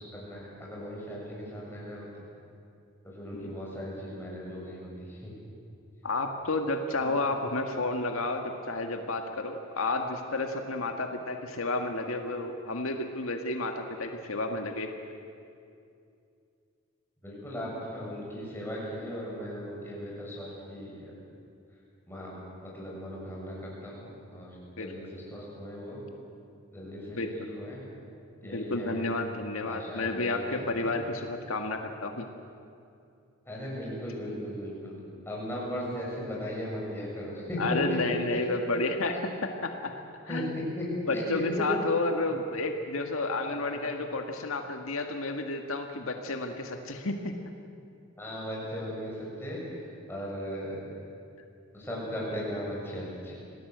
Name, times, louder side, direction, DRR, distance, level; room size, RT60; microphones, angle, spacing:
voice 1, 0.0-2.2 3.0-5.3 7.0-7.1 17.2-21.1 22.1-26.0 26.7-27.8 28.4-29.1 29.6-31.0 33.5-34.9 35.3-37.8 38.3-38.4 40.3-41.4 42.3-42.4 43.5-43.9 48.2-49.6 50.1-50.8 51.7-53.3, equal, 10° left, -5 dB, 6.9 m, -37 dB
voice 2, 6.0-14.9 24.8-24.9 27.2-27.5 28.5-32.3 37.6-39.2 39.6-39.9 40.3-40.6 41.1-47.3, left 2 dB, 85° left, 4 dB, 1.8 m, -31 dB
27.0 x 18.0 x 8.0 m, 2.5 s
head